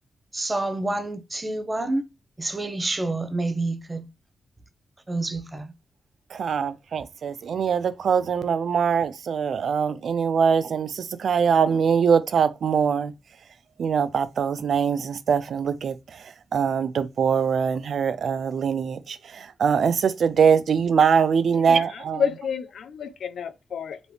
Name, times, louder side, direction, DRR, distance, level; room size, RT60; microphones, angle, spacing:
voice 1, 0.3-2.0 2.4-4.1 5.1-5.7, right 2 dB, 25° right, 0.8 m, -28 dB
voice 2, 6.3-13.1 13.8-22.2, right 6 dB, 75° right, 0.4 m, -23 dB
voice 3, 21.7-24.0, left 7 dB, 85° left, 0.5 m, -30 dB
5.2 x 3.1 x 3.2 m
cardioid pair, 85°, 0 cm